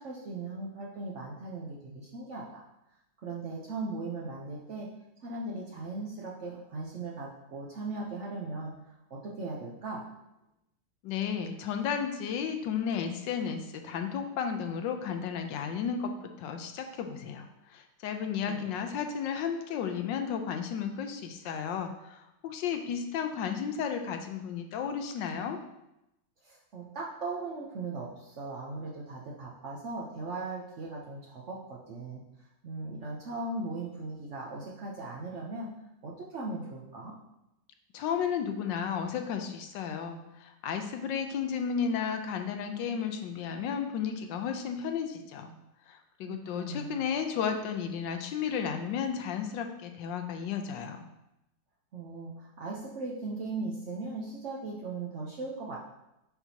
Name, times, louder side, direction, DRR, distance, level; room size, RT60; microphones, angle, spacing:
voice 1, 0.0-2.6 3.2-4.9 5.2-10.0 18.5-18.6 26.4-32.2 32.6-35.7 36.0-37.1 46.2-47.1 51.9-55.8, right 3 dB, 60° right, -3 dB, 0.8 m, -38 dB
voice 2, 11.0-16.1 16.4-25.6 37.9-45.5 45.9-51.0, left 7 dB, 90° left, 6 dB, 1.3 m, -33 dB
5.8 x 5.8 x 2.7 m, 0.88 s
omnidirectional pair, 2.0 m